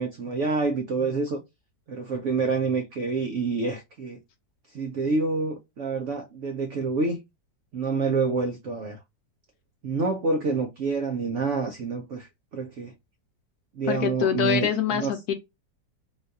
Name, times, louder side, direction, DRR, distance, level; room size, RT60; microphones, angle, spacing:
voice 1, 0.0-1.4 1.9-4.2 4.7-7.2 7.7-9.0 9.8-12.9 13.8-15.1, right 4 dB, 80° right, 0.6 m, -27 dB
voice 2, 13.9-15.3, left 9 dB, 70° left, 1.0 m, -25 dB
3.8 x 2.3 x 2.5 m
omnidirectional pair, 2.0 m